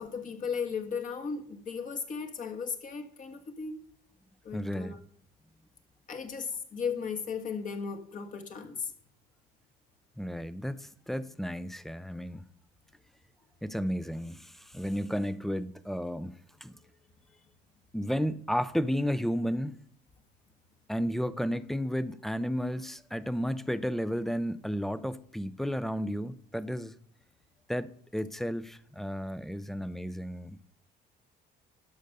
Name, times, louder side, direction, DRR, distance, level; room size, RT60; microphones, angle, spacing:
voice 1, 0.0-3.8 4.4-5.0 6.1-8.9, left 6 dB, 45° left, 1.5 m, -36 dB
voice 2, 4.5-5.0 10.2-12.4 13.6-16.7 17.9-19.8 20.9-26.9 27.7-30.6, equal, ahead, 0.5 m, -33 dB
12.0 x 5.2 x 6.6 m
cardioid pair, 110°, 18 cm